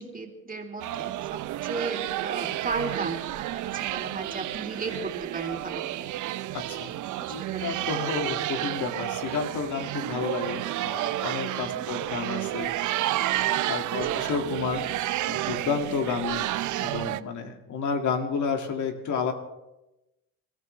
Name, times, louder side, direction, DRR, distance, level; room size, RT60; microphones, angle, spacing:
voice 1, 0.0-6.1 7.2-7.8 11.6-11.9 14.1-14.2, right 3 dB, 30° right, 2 dB, 3.0 m, -36 dB
sound 1, 0.8-17.2, right 14 dB, 75° right, 0.6 m, -31 dB
voice 2, 6.5-7.0 7.3-14.9 15.3-16.5 16.8-19.3, left 5 dB, 75° left, 4 dB, 2.2 m, -31 dB
28.5 x 13.5 x 3.3 m, 0.96 s
cardioid pair, 90°, 30 cm